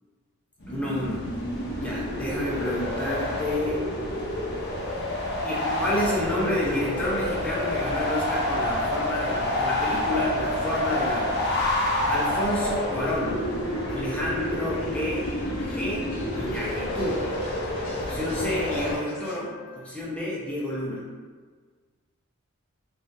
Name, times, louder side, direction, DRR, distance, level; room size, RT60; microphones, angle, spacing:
sound 1, 0.6-19.0, left 1 dB, 50° left, 0.7 m, -28 dB
voice 1, 0.7-1.3 1.7-3.8 5.4-11.4 12.1-13.4 13.9-15.3 15.6-16.1 16.3-17.2 18.0-21.0, left 1 dB, 5° left, -6 dB, 0.6 m, -30 dB
Wind instrument woodwind instrument, 10.7-19.9, left 9 dB, 75° right, 1.4 m, -45 dB
sound 2, 12.8-19.4, left 1 dB, 75° left, 0.9 m, -46 dB
3.6 x 2.5 x 2.6 m, 1.5 s
head